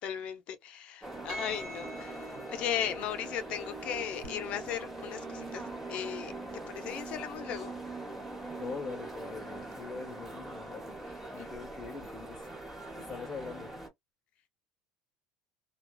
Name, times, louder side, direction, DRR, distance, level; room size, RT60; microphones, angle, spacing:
voice 1, 0.0-2.1 2.5-5.6 5.9-6.3 6.7-7.7 11.4-11.5, left 9 dB, 55° left, 0.6 m, -36 dB
sound 1, 1.0-13.9, right 2 dB, 10° right, 1.1 m, -42 dB
Percussion, 1.3-5.9, right 1 dB, 30° right, 1.0 m, -47 dB
sound 2, 4.2-7.6, right 4 dB, 90° right, 1.0 m, -52 dB
voice 2, 8.6-10.9 11.3-13.7, left 5 dB, 25° left, 1.2 m, -43 dB
2.3 x 2.3 x 2.3 m
cardioid pair, 125°, 2 cm